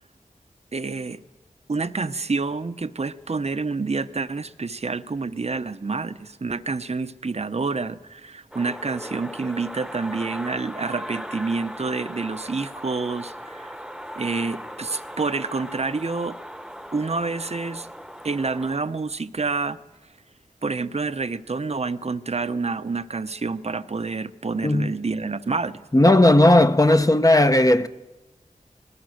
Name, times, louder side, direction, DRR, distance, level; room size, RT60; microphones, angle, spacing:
voice 1, 0.7-1.2 1.7-13.7 14.2-16.4 16.9-17.9 18.2-19.8 20.6-25.8, right 4 dB, 50° right, 0.8 m, -28 dB
Garage Jazz In Chicagos Suburbs, 8.5-18.8, equal, 5° right, 1.1 m, -38 dB
voice 2, 25.9-27.9, left 1 dB, 25° left, 0.9 m, -16 dB
24.0 x 19.5 x 6.5 m
wide cardioid pair, 55°, 14 cm